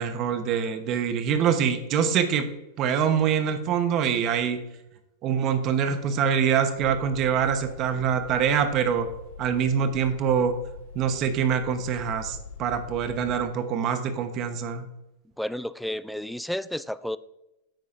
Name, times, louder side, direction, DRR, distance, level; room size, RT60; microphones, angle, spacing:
voice 1, 0.0-2.5 2.8-4.6 5.2-9.1 9.4-10.5 10.9-14.9, right 7 dB, 40° right, 7 dB, 1.0 m, -24 dB
sound 1, 6.8-13.4, left 4 dB, 80° left, 2.2 m, -43 dB
voice 2, 15.4-17.2, left 1 dB, ahead, 16 dB, 0.4 m, -31 dB
9.2 x 9.2 x 2.6 m, 0.92 s
hypercardioid pair, 120°, 0 cm